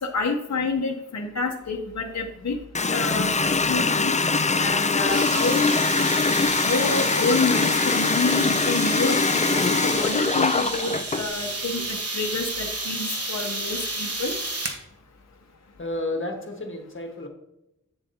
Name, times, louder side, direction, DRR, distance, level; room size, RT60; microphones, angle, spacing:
voice 1, 0.0-2.6 2.9-4.1 4.6-5.8 6.6-9.2 9.5-14.4, left 3 dB, 60° left, 1 dB, 0.9 m, -28 dB
Water tap faucet, 2.7-11.3, left 4 dB, 25° left, 0.4 m, -23 dB
sound 1, 5.1-14.8, right 2 dB, 50° right, 1.2 m, -31 dB
voice 2, 15.8-17.3, left 1 dB, 40° left, 2 dB, 1.5 m, -31 dB
8.9 x 7.1 x 2.8 m, 0.88 s
wide cardioid pair, 80°, 31 cm